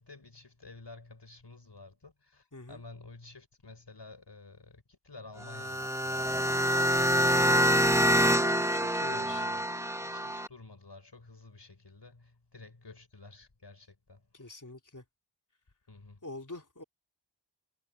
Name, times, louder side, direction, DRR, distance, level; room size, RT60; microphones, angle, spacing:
voice 1, 0.0-6.6 9.1-9.7 10.0-14.5 15.9-16.2, left 3 dB, 60° left, 3.9 m, -51 dB
voice 2, 2.5-2.8 8.7-9.5 14.3-15.0 16.2-16.8, left 2 dB, 40° left, 3.3 m, -45 dB
sound 1, 5.4-10.5, equal, 5° right, 0.8 m, -26 dB
wide cardioid pair, 40°, 47 cm